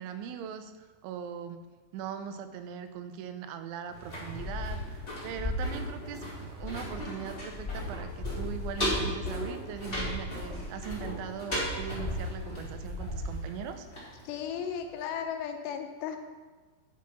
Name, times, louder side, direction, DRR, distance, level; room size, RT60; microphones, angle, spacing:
voice 1, 0.0-1.6 1.9-13.9, right 8 dB, 90° right, 9 dB, 3.1 m, -40 dB
sound 1, 3.9-14.7 15.0-15.1, left 1 dB, 15° left, 2.2 m, -35 dB
voice 2, 14.2-16.2, left 8 dB, 80° left, 5 dB, 2.8 m, -35 dB
11.0 x 5.9 x 5.9 m, 1.3 s
omnidirectional pair, 5.2 m